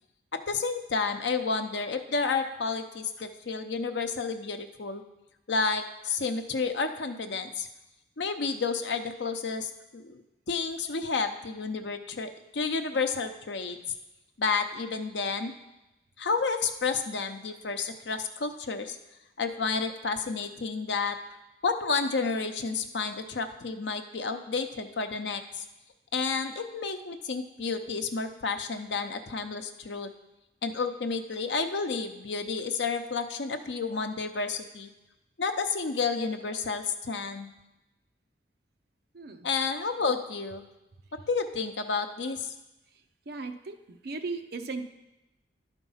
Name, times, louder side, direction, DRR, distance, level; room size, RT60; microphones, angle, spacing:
voice 1, 0.3-5.0 5.5-7.7 8.2-10.2 10.5-13.8 14.4-15.5 16.2-19.0 19.4-21.2 21.6-25.6 26.1-30.1 30.6-34.9 35.4-37.5 39.4-40.6 41.3-42.5, left 4 dB, 75° left, 7 dB, 0.7 m, -31 dB
voice 2, 39.1-39.5 43.3-43.8 44.0-44.8, right 3 dB, 60° right, 7 dB, 0.6 m, -36 dB
11.0 x 4.5 x 5.6 m, 0.96 s
head